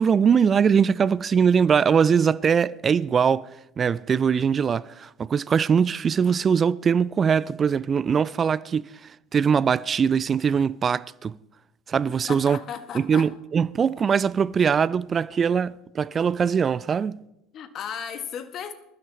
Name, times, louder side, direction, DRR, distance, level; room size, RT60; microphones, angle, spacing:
voice 1, 0.0-3.5 3.8-11.3 11.9-12.6 12.9-17.2, right 6 dB, 35° right, 0.3 m, -22 dB
voice 2, 12.3-13.3 17.5-18.7, left 8 dB, 45° left, 1.3 m, -35 dB
19.5 x 12.0 x 3.2 m
hypercardioid pair, 70°, 0 cm